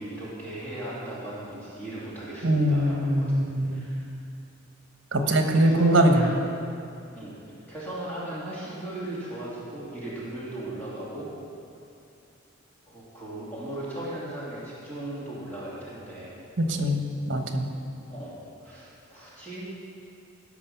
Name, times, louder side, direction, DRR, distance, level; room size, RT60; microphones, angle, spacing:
voice 1, 0.0-4.1 5.2-6.4 7.1-7.3 7.7-11.3 12.9-16.3 18.1-18.4 18.6-19.7, right 1 dB, 10° left, -9 dB, 2.5 m, -37 dB
voice 2, 2.4-3.9 5.1-6.3 16.6-17.7, right 1 dB, 60° right, 5 dB, 1.1 m, -22 dB
17.0 x 6.2 x 5.8 m, 2.5 s
head